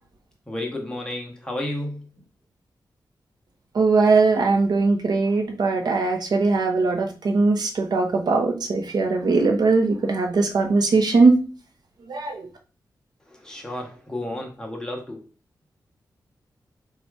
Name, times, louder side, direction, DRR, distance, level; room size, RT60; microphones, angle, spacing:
voice 1, 0.5-2.1 13.3-15.2, left 1 dB, 10° left, 0 dB, 0.8 m, -32 dB
voice 2, 3.7-11.3 12.1-12.4, right 3 dB, 65° right, 4 dB, 0.7 m, -20 dB
4.1 x 2.4 x 4.5 m, 0.35 s
wide cardioid pair, 165°, 8 cm